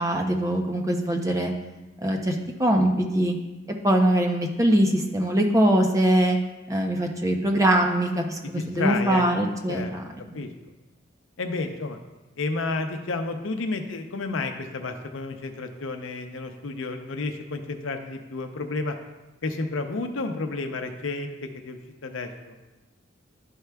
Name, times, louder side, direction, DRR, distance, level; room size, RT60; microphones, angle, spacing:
voice 1, 0.0-1.5 2.0-3.3 3.8-6.4 6.7-10.0 10.3-10.4, right 1 dB, 15° right, 3 dB, 0.5 m, -22 dB
voice 2, 8.4-9.2 9.7-9.9 10.3-10.5 11.4-12.0 12.4-19.0 19.4-21.3 21.6-22.6, left 3 dB, 80° left, 5 dB, 0.6 m, -31 dB
11.0 x 4.6 x 2.3 m, 1.1 s
head